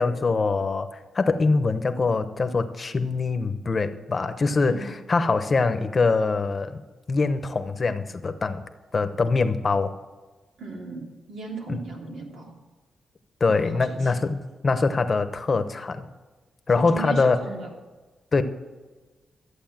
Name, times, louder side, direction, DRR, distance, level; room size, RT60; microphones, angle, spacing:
voice 1, 0.0-6.8 7.1-8.6 8.9-9.9 13.4-16.0 16.7-17.4 18.3-18.4, left 4 dB, 35° left, 9 dB, 0.9 m, -23 dB
voice 2, 10.6-12.6 13.5-14.3 16.7-17.7, right 3 dB, 85° right, -1 dB, 3.2 m, -37 dB
14.0 x 8.4 x 7.4 m, 1.2 s
cardioid pair, 115°, 0 cm